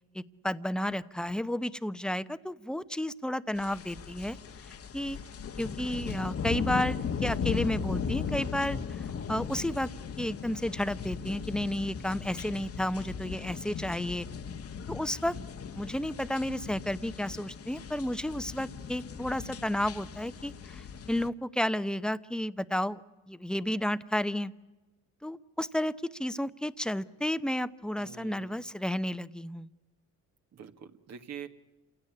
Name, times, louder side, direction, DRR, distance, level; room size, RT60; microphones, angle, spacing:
voice 1, 0.1-4.4 4.9-5.2 5.6-9.9 10.2-14.3 14.9-15.4 15.7-23.0 23.3-24.5 25.2-29.7, left 1 dB, 5° left, 14 dB, 0.8 m, -32 dB
sound 1, 3.6-21.3, left 6 dB, 50° left, 1.3 m, -37 dB
voice 2, 28.0-28.6 30.5-31.5, right 8 dB, 60° right, 7 dB, 1.7 m, -45 dB
27.5 x 17.0 x 9.8 m, 1.1 s
cardioid pair, 90°, 30 cm